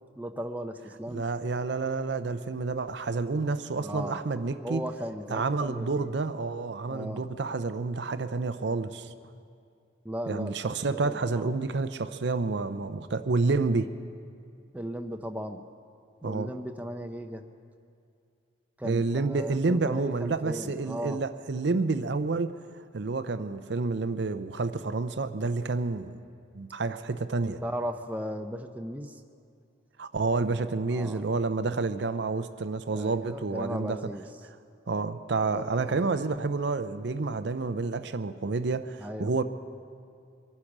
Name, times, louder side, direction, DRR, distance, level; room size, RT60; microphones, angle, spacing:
voice 1, 0.2-1.2 3.8-4.2 4.6-6.1 6.9-7.2 10.0-11.5 14.7-15.6 16.2-17.4 18.8-21.2 27.6-29.2 30.9-31.2 32.9-34.2 35.5-36.2 39.0-39.3, equal, 10° right, 5 dB, 0.6 m, -37 dB
voice 2, 1.1-4.8 5.3-9.1 10.3-13.9 16.2-16.5 18.8-22.5 22.9-26.2 26.5-27.6 30.0-34.0 34.9-39.4, right 3 dB, 65° right, 11 dB, 0.6 m, -29 dB
23.5 x 9.9 x 6.0 m, 2.4 s
head